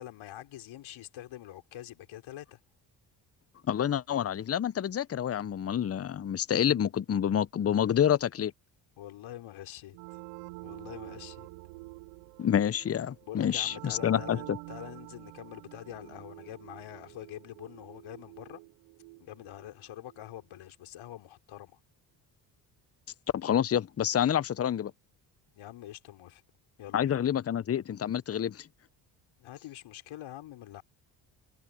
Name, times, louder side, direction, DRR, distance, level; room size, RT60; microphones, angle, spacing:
voice 1, 0.0-2.6 7.7-8.0 9.0-10.0 10.6-11.5 13.2-18.6 19.2-21.8 25.5-26.4 26.8-27.2 29.4-30.8, left 13 dB, 65° left, 3.9 m, -45 dB
voice 2, 3.7-8.5 12.4-14.6 23.3-24.9 26.9-28.7, left 9 dB, 30° left, 0.7 m, -28 dB
sound 1, 9.9-20.4, right 25 dB, 85° right, 0.9 m, -48 dB
hypercardioid pair, 60°, 50 cm